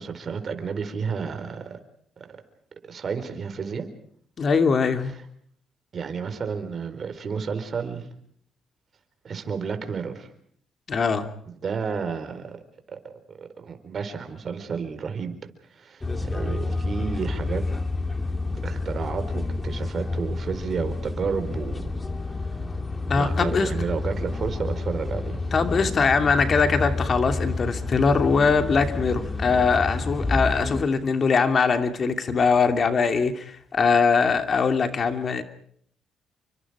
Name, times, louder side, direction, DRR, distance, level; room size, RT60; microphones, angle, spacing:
voice 1, 0.0-1.8 2.2-2.4 2.9-3.9 5.0-5.1 5.9-8.1 9.2-10.3 11.6-12.6 12.9-15.4 15.7-17.6 18.6-21.9 22.3-22.6 23.1-25.4, right 6 dB, 50° right, 8 dB, 4.4 m, -31 dB
voice 2, 4.4-5.1 10.9-11.3 23.1-23.7 25.5-35.4, left 5 dB, 45° left, 7 dB, 2.8 m, -22 dB
sound 1, 16.0-30.8, left 3 dB, 20° left, 2.4 m, -29 dB
29.5 x 24.5 x 5.0 m, 0.64 s
cardioid pair, 90°, 0 cm